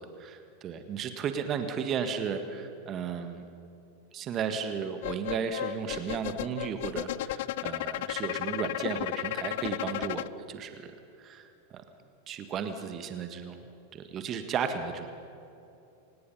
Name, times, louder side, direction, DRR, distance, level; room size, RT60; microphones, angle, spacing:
voice 1, 0.0-3.4 4.1-10.9 11.2-11.8 12.3-13.6 13.9-15.1, right 7 dB, 30° right, 8 dB, 1.6 m, -34 dB
sound 1, 5.0-10.3, left 16 dB, 50° left, 0.4 m, -34 dB
27.0 x 18.5 x 5.6 m, 2.8 s
figure-of-eight pair, 90°, 0 cm